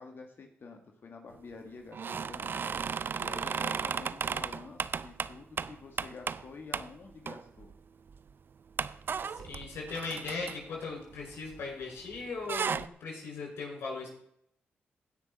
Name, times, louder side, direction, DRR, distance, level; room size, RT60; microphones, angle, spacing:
voice 1, 0.0-2.5 3.2-7.7, left 4 dB, 60° left, 3 dB, 1.8 m, -48 dB
sound 1, 1.9-6.5 6.7-6.9 7.3-7.7 8.1-8.2 8.8-11.8 12.1-12.9, right 6 dB, 55° right, 0.5 m, -35 dB
voice 2, 9.3-14.1, left 4 dB, 80° left, -1 dB, 5.5 m, -38 dB
16.5 x 6.1 x 4.2 m, 0.69 s
cardioid pair, 55°, 4 cm